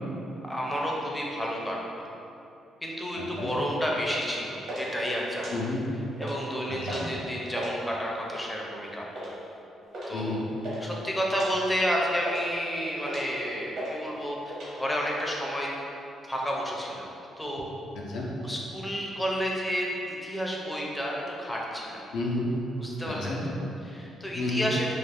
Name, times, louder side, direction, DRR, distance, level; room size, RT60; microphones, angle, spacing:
voice 1, 0.4-1.8 2.8-5.5 6.2-9.3 10.1-10.3 10.8-15.7 16.2-17.1 17.4-17.7 18.4-22.0 22.7-24.9, equal, 10° left, -3 dB, 0.4 m, -31 dB
voice 2, 3.1-3.5 5.5-5.9 6.7-7.3 10.1-10.4 17.9-18.3 22.1-22.5 23.0-23.4 24.3-24.7, left 2 dB, 80° left, -3 dB, 0.5 m, -32 dB
sound 1, 3.4-3.6 4.0-4.3 4.6-4.9 5.3-5.8 6.1-6.4 6.9-7.1 7.4-7.7 8.3-8.6 9.1-9.3 9.9-10.1 10.4-10.8 11.3-11.5 12.0-12.6 13.0-13.4 13.8-13.9 14.2-14.7, right 1 dB, 65° right, 0.8 m, -37 dB
2.4 x 2.3 x 3.3 m, 2.8 s
cardioid pair, 90°, 0 cm